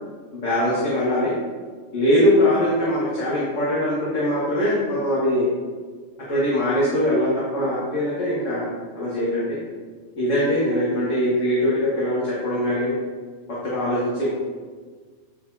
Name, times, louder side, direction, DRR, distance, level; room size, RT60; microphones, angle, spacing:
voice 1, 0.3-1.3 1.9-5.5 6.3-9.6 10.2-12.9 13.6-14.3, left 1 dB, 85° left, -8 dB, 1.8 m, -22 dB
9.2 x 5.0 x 2.7 m, 1.5 s
omnidirectional pair, 1.3 m